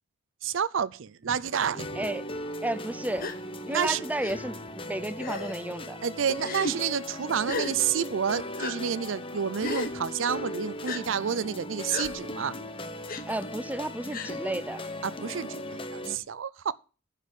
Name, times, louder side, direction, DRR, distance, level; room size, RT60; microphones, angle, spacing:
voice 1, 0.4-1.8 3.7-4.0 6.0-12.6 15.0-16.7, right 7 dB, 80° right, 0.5 m, -29 dB
sound 1, 1.1-2.4, right 2 dB, 45° right, 1.1 m, -46 dB
sound 2, 1.7-16.2, left 1 dB, 30° left, 1.0 m, -38 dB
voice 2, 2.0-2.3 2.6-3.3 3.7-6.0 13.3-14.8, right 1 dB, 10° right, 0.5 m, -32 dB
Gasp, 3.2-3.4 4.2-4.3 5.2-5.6 6.4-6.7 7.5-7.7 8.6-8.7 9.6-9.9 10.9-11.0 11.9-12.1 13.1-13.2 14.1-14.3, left 3 dB, 45° left, 1.3 m, -33 dB
11.0 x 5.0 x 8.5 m
head